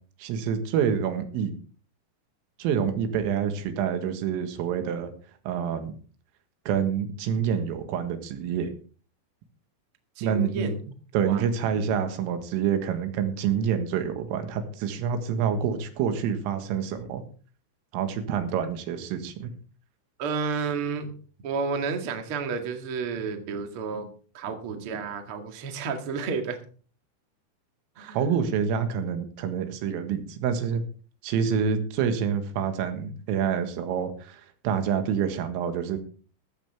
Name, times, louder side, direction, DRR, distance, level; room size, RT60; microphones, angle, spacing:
voice 1, 0.2-1.5 2.6-5.1 5.5-5.9 6.7-8.7 10.2-10.7 11.1-17.2 17.9-19.5 28.1-30.8 31.2-36.0, right 7 dB, 90° right, 8 dB, 4.2 m, -27 dB
voice 2, 10.2-10.8 11.2-11.4 20.2-21.1 21.4-24.1 24.3-26.6 27.9-28.2, right 5 dB, 65° right, 5 dB, 1.3 m, -31 dB
14.5 x 14.5 x 3.6 m, 0.40 s
omnidirectional pair, 5.8 m